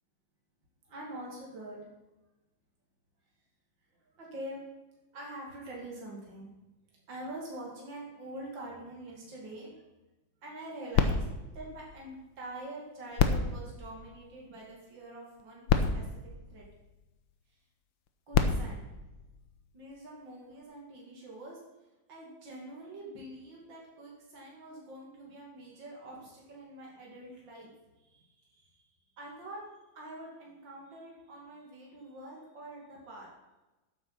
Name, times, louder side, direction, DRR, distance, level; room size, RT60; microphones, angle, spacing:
voice 1, 0.9-1.9 4.1-4.6 5.1-6.5 7.1-9.7 10.4-16.7 18.3-18.9 19.7-21.6 22.1-27.7 28.0-28.9 29.1-29.6 29.9-33.3, right 1 dB, 75° right, -3 dB, 3.3 m, -45 dB
sound 1, 10.9-12.6 13.1-14.7 15.4-15.5 15.7-17.2 18.1-19.9 20.6-20.7, left 6 dB, 90° left, 1.8 m, -31 dB
13.0 x 8.5 x 5.7 m, 1.1 s
omnidirectional pair, 2.1 m